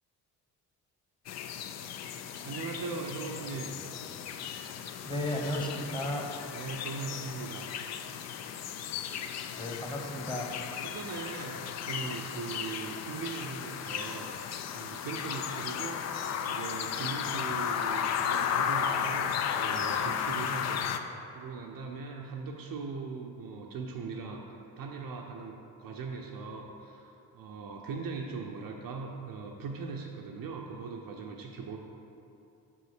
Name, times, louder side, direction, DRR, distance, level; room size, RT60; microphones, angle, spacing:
sound 1, 1.3-21.0, left 8 dB, 35° left, 0.4 m, -34 dB
voice 1, 2.4-3.8 6.5-7.7 10.8-14.4 14.7-20.8 21.3-31.8, right 4 dB, 45° right, 1 dB, 0.7 m, -40 dB
voice 2, 5.0-6.2 9.6-10.5, left 1 dB, 10° left, 0 dB, 1.2 m, -34 dB
5.6 x 5.4 x 4.9 m, 2.9 s
figure-of-eight pair, 40°, 49 cm